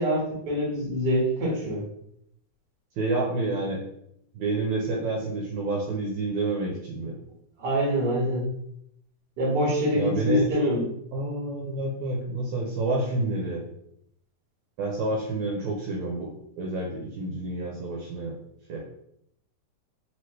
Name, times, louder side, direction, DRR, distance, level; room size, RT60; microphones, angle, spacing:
voice 1, 0.0-1.8 7.6-8.4 9.4-10.8, equal, 45° right, -5 dB, 1.6 m, -25 dB
voice 2, 3.0-3.8 4.3-7.2 9.9-10.7 11.1-13.6 14.8-16.3 16.6-18.3 18.7-18.8, right 2 dB, 75° right, -2 dB, 1.9 m, -29 dB
4.6 x 2.9 x 3.1 m, 0.74 s
omnidirectional pair, 3.6 m